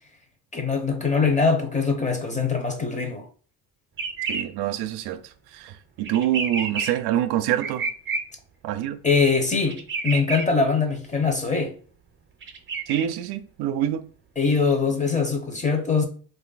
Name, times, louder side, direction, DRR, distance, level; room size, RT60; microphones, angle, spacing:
voice 1, 0.5-3.2 9.0-11.7 14.4-16.1, left 4 dB, 20° left, 0.8 m, -22 dB
sound 1, 4.0-4.4 6.0-6.9 7.6-8.2 9.6-10.4 12.4-13.0, right 4 dB, 30° right, 0.6 m, -29 dB
voice 2, 4.3-5.2 5.5-7.9 8.6-9.0 12.9-14.1, right 11 dB, 80° right, 0.5 m, -26 dB
3.1 x 2.6 x 3.9 m
cardioid pair, 110°, 38 cm